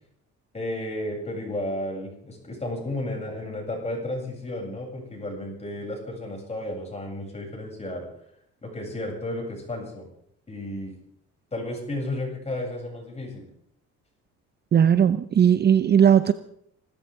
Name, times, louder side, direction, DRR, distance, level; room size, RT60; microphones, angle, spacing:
voice 1, 0.5-8.1 8.6-10.0 10.5-10.9 11.5-13.5, left 1 dB, 20° left, -1 dB, 7.9 m, -33 dB
voice 2, 14.7-16.3, right 8 dB, 35° right, 13 dB, 0.7 m, -18 dB
26.0 x 14.0 x 3.8 m, 0.69 s
cardioid pair, 115°, 29 cm